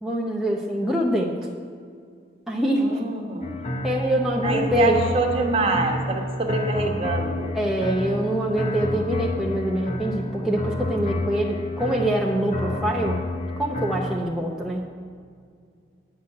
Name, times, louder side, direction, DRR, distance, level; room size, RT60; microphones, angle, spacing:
voice 1, 0.0-1.4 2.5-3.0 3.8-5.0 7.5-13.2 13.6-14.9, equal, ahead, -3 dB, 0.7 m, -24 dB
voice 2, 2.8-3.6 4.4-7.5, right 3 dB, 30° right, 2 dB, 1.2 m, -25 dB
sound 1, 3.4-14.2, left 1 dB, 40° left, 0.9 m, -30 dB
9.8 x 6.2 x 8.5 m, 2.2 s
head